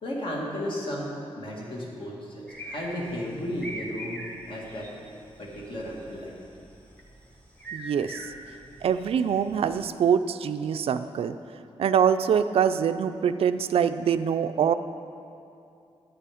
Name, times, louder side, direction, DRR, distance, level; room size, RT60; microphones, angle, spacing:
voice 1, 0.0-1.1 1.4-4.9 5.4-6.3, equal, 55° left, -3 dB, 1.8 m, -34 dB
sound 1, 2.5-9.8, right 1 dB, 10° left, 1.0 m, -43 dB
voice 2, 7.7-8.3 8.8-11.4 11.8-14.7, right 7 dB, 70° right, 10 dB, 0.3 m, -24 dB
10.0 x 8.4 x 4.9 m, 2.6 s
wide cardioid pair, 175°, 10 cm